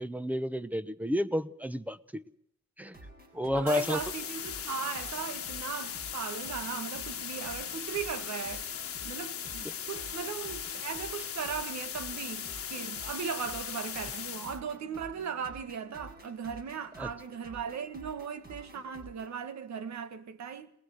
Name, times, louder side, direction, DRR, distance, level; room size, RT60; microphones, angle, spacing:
voice 1, 0.0-2.2 2.8-3.0 3.3-4.0 17.0-17.1, left 1 dB, 5° right, 1.0 m, -31 dB
sound 1, 2.8-19.3, right 1 dB, 30° right, 6.7 m, -51 dB
voice 2, 3.5-8.7 9.0-20.7, right 7 dB, 65° right, 1.9 m, -38 dB
sound 2, 3.7-14.6, left 8 dB, 50° left, 1.4 m, -38 dB
27.0 x 19.5 x 6.7 m
cardioid pair, 90°, 30 cm